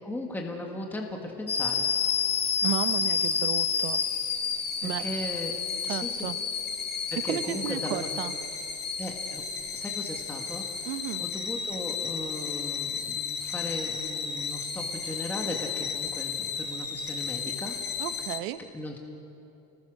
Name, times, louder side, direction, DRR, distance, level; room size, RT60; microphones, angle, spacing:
voice 1, 0.0-1.9 4.8-5.6 5.8-6.3 7.1-8.1 9.0-9.5 9.7-10.9 11.2-17.8 18.7-19.0, left 1 dB, 5° left, 0 dB, 1.7 m, -37 dB
sound 1, 1.5-18.4, left 6 dB, 20° left, 1.7 m, -31 dB
voice 2, 2.6-4.0 4.8-5.1 5.9-6.4 7.2-8.3 10.8-11.2 18.0-18.6, right 14 dB, 70° right, 12 dB, 1.0 m, -33 dB
29.5 x 21.0 x 6.4 m, 2.8 s
cardioid pair, 160°, 44 cm